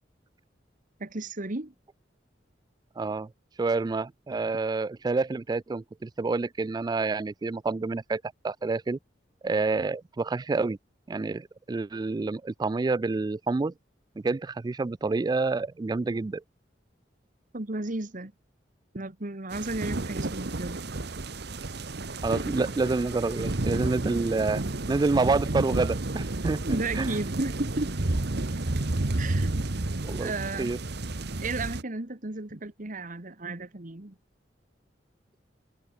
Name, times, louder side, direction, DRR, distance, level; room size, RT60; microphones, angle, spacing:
voice 1, 1.0-1.7 17.5-18.3 18.9-20.8 26.6-27.9 29.2-29.5 30.2-30.7 31.4-34.1, right 2 dB, 45° right, 1.7 m, -33 dB
voice 2, 3.0-3.3 3.6-9.0 9.4-10.8 11.1-13.7 14.2-16.4 22.2-24.6 24.9-26.6 26.9-27.2 30.0-30.3 30.6-30.8, right 3 dB, 20° right, 0.3 m, -28 dB
sound 1, 19.5-31.8, right 2 dB, 65° right, 1.3 m, -31 dB
head